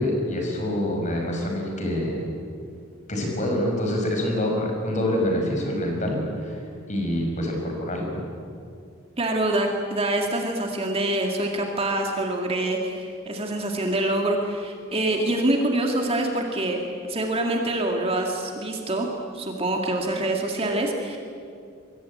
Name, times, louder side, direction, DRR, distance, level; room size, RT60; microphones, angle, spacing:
voice 1, 0.0-2.3 3.1-8.2, left 1 dB, 35° left, 1 dB, 6.0 m, -26 dB
voice 2, 9.2-21.2, right 1 dB, 25° right, 1 dB, 2.4 m, -25 dB
25.5 x 22.5 x 8.7 m, 2.3 s
head